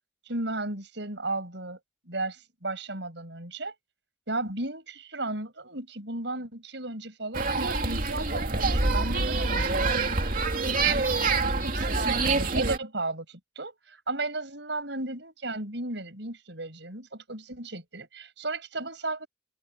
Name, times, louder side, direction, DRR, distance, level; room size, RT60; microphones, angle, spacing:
voice 1, 0.3-1.8 2.1-3.7 4.3-11.2 11.4-19.3, right 2 dB, 75° right, 6.9 m, -35 dB
sound 1, 7.3-12.8, right 3 dB, 50° right, 2.7 m, -26 dB
open air
head